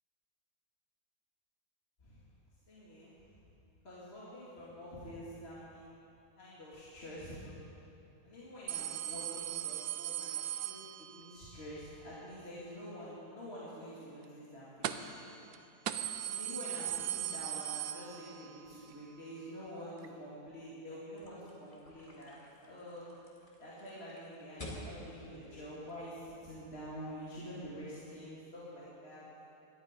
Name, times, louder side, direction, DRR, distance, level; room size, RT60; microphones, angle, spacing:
voice 1, 2.7-3.2 3.8-5.9 6.4-7.6 8.2-15.4 16.0-22.4 22.7-23.1 23.6-29.2, equal, 40° left, -9 dB, 2.6 m, -47 dB
sound 1, 8.7-11.4 14.8-15.2 15.5-15.6 15.9-18.6 18.9-19.0 20.0-20.1, right 11 dB, 80° right, 1.2 m, -38 dB
sound 2, 21.2-26.5, left 1 dB, 20° left, 1.9 m, -51 dB
17.5 x 12.0 x 5.2 m, 2.8 s
omnidirectional pair, 1.7 m